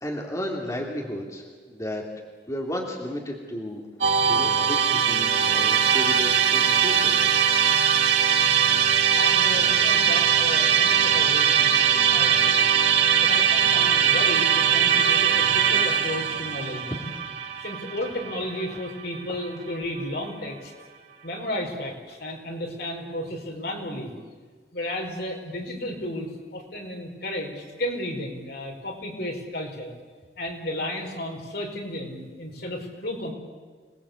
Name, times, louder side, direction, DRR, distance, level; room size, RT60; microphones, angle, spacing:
voice 1, 0.0-2.0 2.5-3.9 4.3-7.4 16.9-17.0, equal, 20° left, 0 dB, 2.9 m, -33 dB
Musical instrument, 4.0-19.2, right 8 dB, 90° right, 2.8 m, -21 dB
voice 2, 9.1-12.6 13.2-16.9 17.6-20.7 21.2-24.1 24.7-29.9 30.4-33.3, left 1 dB, 60° left, 1 dB, 5.1 m, -33 dB
27.0 x 20.0 x 8.5 m, 1.5 s
head